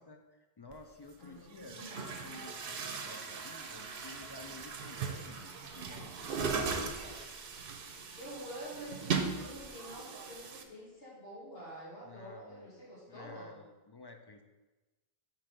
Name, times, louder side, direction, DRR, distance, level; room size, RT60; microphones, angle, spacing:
voice 1, 0.0-7.3 12.0-12.7 13.1-14.4, left 3 dB, 40° left, 4 dB, 0.4 m, -53 dB
Chatter / Gurgling / Tap, 0.7-0.8 1.5-10.6, right 5 dB, 65° right, 0.8 m, -38 dB
voice 2, 1.2-2.1 8.2-13.5, equal, 70° left, -7 dB, 2.4 m, -48 dB
5.9 x 4.4 x 5.0 m, 1.1 s
omnidirectional pair, 1.1 m